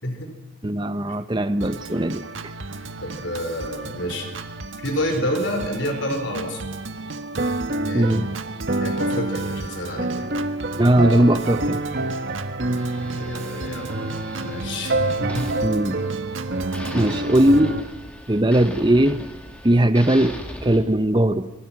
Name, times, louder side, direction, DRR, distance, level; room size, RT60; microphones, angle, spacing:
voice 1, 0.0-0.3 0.6-0.7 3.0-4.3 4.8-6.7 7.8-8.2 8.8-10.3 12.9-15.6 16.8-16.9, equal, 65° left, 5 dB, 4.9 m, -29 dB
voice 2, 0.6-2.2 7.9-8.3 10.8-11.8 15.6-16.0 16.9-17.8 18.3-19.3 19.6-21.5, right 1 dB, 25° right, 11 dB, 0.9 m, -19 dB
Organ, 1.6-17.6, right 3 dB, 75° right, 1.6 m, -35 dB
sound 1, 7.4-17.8, right 2 dB, 50° right, 1.4 m, -27 dB
sound 2, 12.8-16.4 16.7-20.8, equal, 5° left, 3.0 m, -38 dB
29.5 x 23.5 x 6.1 m, 1.0 s
head